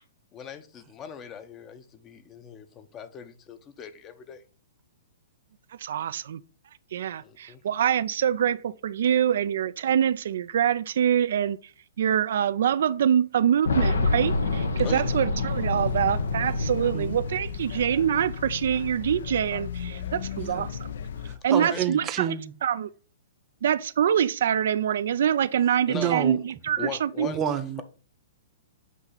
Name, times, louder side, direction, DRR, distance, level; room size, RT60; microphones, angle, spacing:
voice 1, 0.3-4.4 7.2-7.6 14.8-15.1 21.5-21.8 25.9-26.2 26.8-27.4, left 7 dB, 25° left, 0.7 m, -39 dB
voice 2, 5.8-6.4 6.9-11.6 12.0-20.9 21.4-22.4 22.6-22.9 23.6-27.3, right 9 dB, 65° right, 0.3 m, -25 dB
Boom, 13.7-18.4 18.7-18.8 19.9-20.0, left 3 dB, 90° left, 1.0 m, -27 dB
sound 1, 15.5-21.4, left 7 dB, 70° left, 0.6 m, -36 dB
voice 3, 21.2-22.5 25.9-26.4 27.2-27.8, right 9 dB, 25° right, 0.8 m, -29 dB
8.1 x 2.8 x 5.7 m
hypercardioid pair, 135°, 0 cm